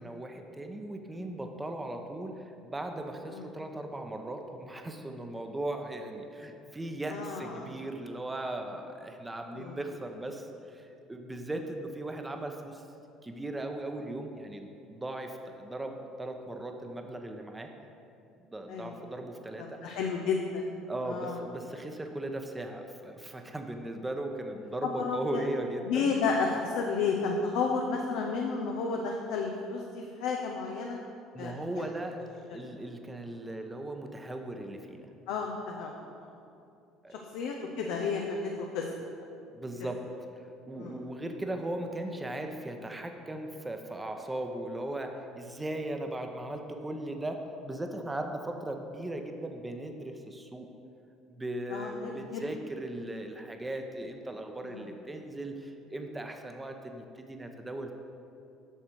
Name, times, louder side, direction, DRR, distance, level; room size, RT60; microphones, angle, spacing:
voice 1, 0.0-12.8 13.2-17.7 18.4-19.9 20.9-26.1 31.3-35.1 37.0-37.3 39.5-40.1 40.4-50.7 51.3-57.9, right 1 dB, 15° right, 4 dB, 0.9 m, -38 dB
voice 2, 7.1-7.7 9.5-9.8 18.7-19.0 19.6-20.7 21.1-21.4 24.8-25.4 25.9-31.0 31.4-31.9 32.1-32.2 32.5-32.6 35.3-35.9 36.2-36.3 37.1-38.9 40.8-41.0 51.7-52.4 54.6-54.9, left 5 dB, 70° left, 0 dB, 0.7 m, -32 dB
8.9 x 6.4 x 4.7 m, 2.6 s
hypercardioid pair, 60°, 0 cm